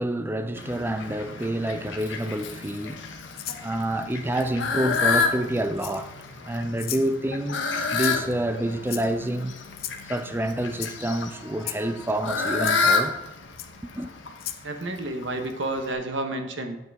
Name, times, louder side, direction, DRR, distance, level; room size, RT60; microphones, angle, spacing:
voice 1, 0.0-3.0 3.6-6.1 6.5-9.6 10.1-13.1 13.8-14.1, right 1 dB, 10° right, 0.5 m, -28 dB
Fowl, 0.5-15.9, left 4 dB, 80° left, 1.1 m, -30 dB
Rattle (instrument), 3.3-3.6 4.9-5.0 5.8-6.2 6.8-7.1 8.0-8.3 8.9-9.3 9.8-10.0 10.7-10.9 11.6-11.8 12.7-12.8 13.6-13.7 14.4-14.6, left 13 dB, 55° left, 0.6 m, -35 dB
voice 2, 14.6-16.8, right 2 dB, 80° right, 1.1 m, -30 dB
9.1 x 7.7 x 3.6 m
head